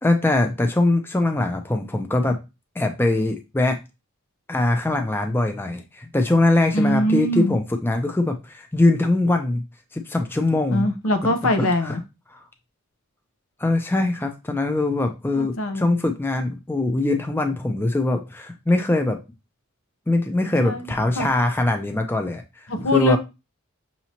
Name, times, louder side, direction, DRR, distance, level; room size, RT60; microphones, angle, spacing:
voice 1, 0.0-2.4 2.8-3.8 4.5-9.6 9.9-10.9 11.6-12.0 12.3-12.4 13.6-19.2 20.1-23.2, left 2 dB, 10° left, 0.4 m, -22 dB
voice 2, 6.7-7.5 10.7-12.0 15.4-16.0 20.6-20.8 21.2-21.3 22.7-23.2, equal, 80° left, 0.7 m, -22 dB
5.9 x 2.8 x 2.8 m
head